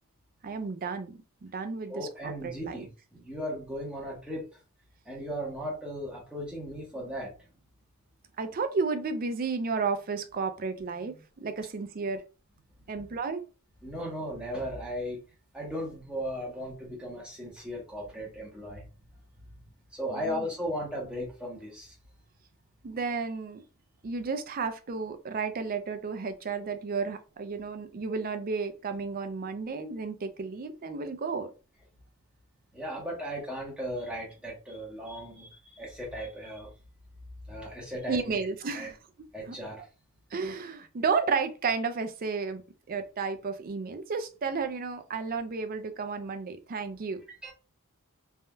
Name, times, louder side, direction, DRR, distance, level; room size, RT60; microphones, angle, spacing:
voice 1, 0.4-2.9 8.4-12.2 12.9-13.4 20.1-20.5 22.8-23.6 24.0-31.5 38.1-39.0 39.5-39.6 40.3-42.6 42.9-47.2, right 4 dB, 40° right, 0.4 m, -32 dB
voice 2, 1.9-4.5 5.0-7.3 12.8-12.9 13.8-15.2 15.5-18.8 19.9-21.9 32.7-36.7 37.4-38.4 38.8-38.9 39.3-39.9 47.4-47.5, equal, 5° right, 1.1 m, -36 dB
3.3 x 2.7 x 2.2 m
head